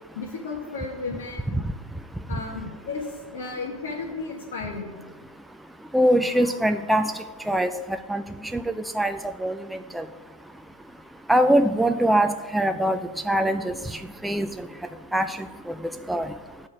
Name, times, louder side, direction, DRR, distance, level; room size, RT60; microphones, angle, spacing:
voice 1, 0.1-1.4 2.3-5.0 6.4-6.6, left 4 dB, 75° left, -4 dB, 1.6 m, -34 dB
voice 2, 5.9-7.1 7.5-7.7 8.1-8.2 8.5-9.6 9.9-10.1 11.3-13.0 13.3-13.7 14.2-14.5 15.1-15.4 16.1-16.3, right 1 dB, 5° right, 8 dB, 0.4 m, -22 dB
12.0 x 4.3 x 4.9 m, 1.3 s
hypercardioid pair, 105°, 0 cm